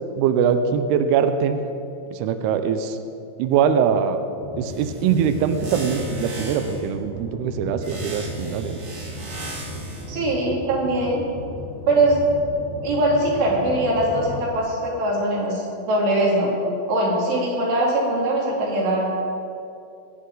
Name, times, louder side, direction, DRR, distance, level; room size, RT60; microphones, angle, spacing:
voice 1, 0.2-1.6 2.1-3.0 3.4-4.2 4.6-8.8, right 7 dB, 85° right, 8 dB, 2.3 m, -22 dB
sound 1, 4.4-14.6, left 1 dB, 80° left, 1.1 m, -35 dB
sound 2, 4.7-6.9 7.8-10.1, right 2 dB, 45° right, 3.2 m, -38 dB
voice 2, 10.1-11.2 11.9-12.2 12.8-16.5 16.9-19.1, right 1 dB, 65° right, -4 dB, 4.5 m, -21 dB
23.5 x 8.4 x 3.9 m, 2.6 s
omnidirectional pair, 5.4 m